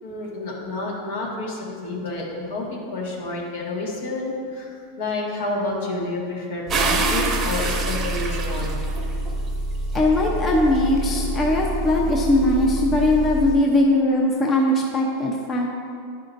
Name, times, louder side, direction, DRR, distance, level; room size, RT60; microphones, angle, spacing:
voice 1, 0.0-8.8, left 2 dB, 75° left, -3 dB, 1.7 m, -29 dB
Engine, 6.7-13.6, right 1 dB, 45° left, 1.6 m, -28 dB
sound 1, 6.7-9.3 9.9-12.8, right 3 dB, 30° right, 0.8 m, -28 dB
voice 2, 9.9-15.7, left 1 dB, 30° left, -1 dB, 0.8 m, -20 dB
10.5 x 5.6 x 2.6 m, 2.3 s
hypercardioid pair, 115°, 0 cm